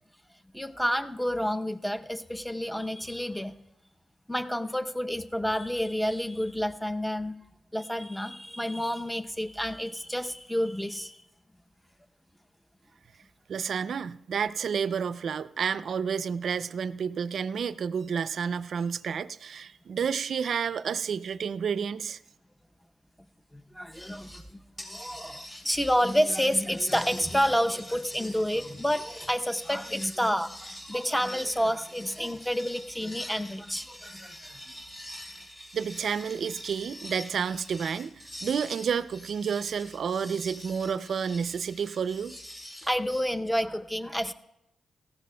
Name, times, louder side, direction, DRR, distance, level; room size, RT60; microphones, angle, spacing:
voice 1, 0.5-3.5 4.3-7.4 7.7-11.2 23.5-35.0 42.8-44.3, equal, 5° left, 9 dB, 0.6 m, -29 dB
voice 2, 13.5-22.2 35.7-42.4, right 7 dB, 70° right, 15 dB, 0.4 m, -30 dB
sound 1, 23.9-24.5 24.8-43.2, equal, 30° left, 4.1 m, -45 dB
18.5 x 15.0 x 2.2 m, 0.89 s
cardioid pair, 65°, 0 cm